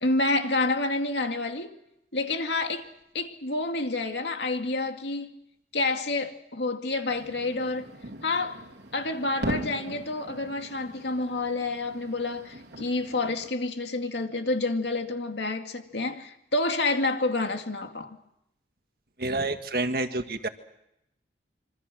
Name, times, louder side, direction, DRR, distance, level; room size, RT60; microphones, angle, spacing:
voice 1, 0.0-1.8 2.1-2.8 3.1-5.4 5.7-7.9 8.2-8.6 8.9-18.2, left 2 dB, 80° left, 2.3 m, -28 dB
sound 1, 7.1-13.5, right 1 dB, 85° right, 3.1 m, -39 dB
voice 2, 19.2-20.5, right 2 dB, 55° right, 1.8 m, -28 dB
26.5 x 25.5 x 6.3 m
head